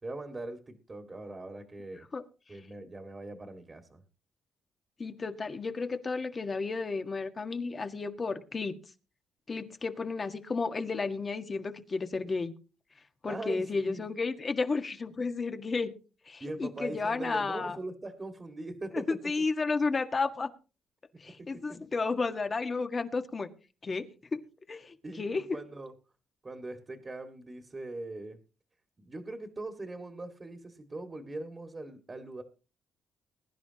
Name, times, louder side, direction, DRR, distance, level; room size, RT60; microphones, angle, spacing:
voice 1, 0.0-2.1 2.5-4.0 13.2-14.0 16.4-19.1 21.4-21.5 25.0-25.9 26.4-28.4 29.0-32.4, right 2 dB, 25° right, 6 dB, 2.1 m, -41 dB
voice 2, 5.0-8.7 9.5-12.5 13.2-15.9 16.2-17.8 19.2-20.5 21.2-23.5 23.8-24.1 24.3-24.4 24.7-25.4, left 4 dB, 35° left, 7 dB, 1.7 m, -32 dB
21.0 x 10.5 x 3.0 m, 0.34 s
cardioid pair, 90°, 0 cm